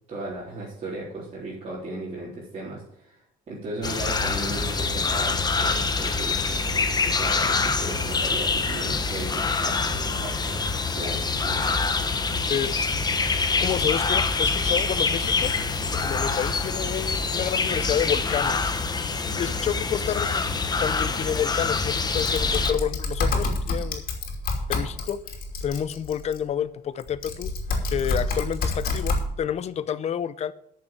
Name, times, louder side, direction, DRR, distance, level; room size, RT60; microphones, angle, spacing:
voice 1, 0.1-3.2 3.5-10.7 10.9-12.1 19.3-19.4, right 2 dB, 40° right, -8 dB, 3.8 m, -36 dB
sound 1, 3.8-22.7, left 4 dB, 25° left, 1.2 m, -25 dB
voice 2, 12.5-13.3 13.6-15.5 15.9-18.7 19.4-20.4 20.8-24.0 24.7-25.2 25.6-27.5 27.9-30.5, left 9 dB, 40° left, 15 dB, 0.6 m, -29 dB
Typing, 22.2-26.4 27.0-29.2, left 3 dB, 60° left, 2.9 m, -28 dB
9.0 x 6.7 x 8.7 m, 0.73 s
cardioid pair, 110°, 17 cm